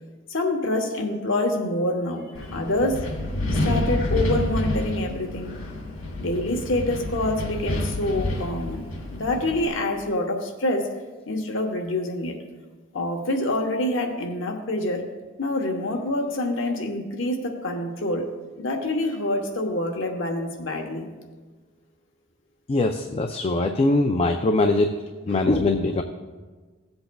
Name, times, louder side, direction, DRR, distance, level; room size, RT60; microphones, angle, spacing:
voice 1, 0.3-3.0 3.5-5.6 6.2-8.8 9.1-10.9 11.3-12.4 12.9-15.0 15.4-18.3 18.6-21.1, left 1 dB, 65° left, 3 dB, 1.1 m, -26 dB
Wind, 2.3-9.7, left 1 dB, 85° left, 2.3 m, -28 dB
voice 2, 22.7-24.9 25.3-26.0, left 2 dB, 30° left, 5 dB, 0.4 m, -22 dB
16.5 x 7.9 x 2.3 m, 1.4 s
head